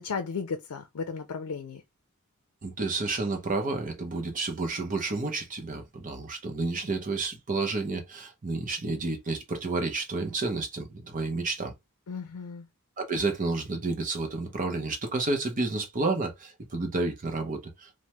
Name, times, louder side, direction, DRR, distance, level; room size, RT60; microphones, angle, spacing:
voice 1, 0.0-1.8 12.1-12.7, left 5 dB, 85° left, 0.5 m, -35 dB
voice 2, 2.6-11.7 13.0-18.0, right 3 dB, 35° right, 0.6 m, -30 dB
3.3 x 2.1 x 2.9 m
head